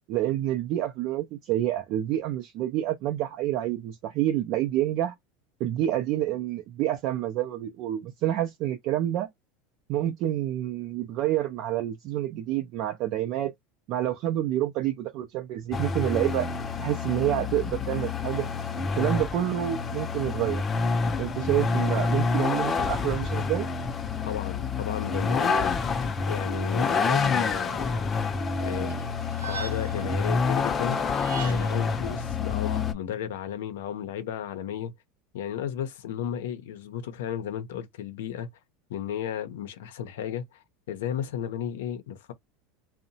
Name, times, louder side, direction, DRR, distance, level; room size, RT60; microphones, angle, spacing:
voice 1, 0.1-5.1 5.6-9.3 9.9-13.5 13.9-16.5 16.8-18.5 18.9-20.6 21.2-23.7, right 13 dB, 55° right, 0.4 m, -28 dB
Vehicle, 15.7-32.9, left 4 dB, 25° left, 0.4 m, -28 dB
voice 2, 24.3-28.1 28.6-29.0 29.4-31.0 31.4-34.9 35.3-38.5 38.9-40.6 40.9-42.3, left 9 dB, 90° left, 0.6 m, -34 dB
sound 1, 28.9-30.1 31.0-31.9, right 8 dB, 85° right, 0.8 m, -40 dB
2.8 x 2.0 x 2.6 m
supercardioid pair, 125°, 0 cm